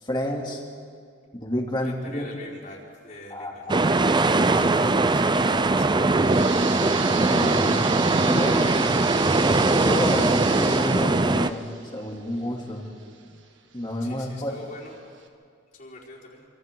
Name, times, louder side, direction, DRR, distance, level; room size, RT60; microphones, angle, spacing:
voice 1, 0.0-0.6 1.3-2.2 3.3-4.1 6.5-6.6 7.2-7.8 8.2-8.8 9.4-12.9 13.7-14.5, left 1 dB, 25° left, -1 dB, 2.9 m, -30 dB
voice 2, 1.8-5.9 14.0-15.0 15.7-16.5, left 1 dB, 50° left, -6 dB, 4.9 m, -44 dB
sound 1, 3.7-11.5, right 2 dB, 25° right, 0.5 m, -21 dB
sound 2, 5.9-13.4 13.9-14.0 14.7-14.8 15.2-15.3, right 6 dB, 90° right, 1.8 m, -35 dB
27.5 x 26.5 x 3.9 m, 2.2 s
head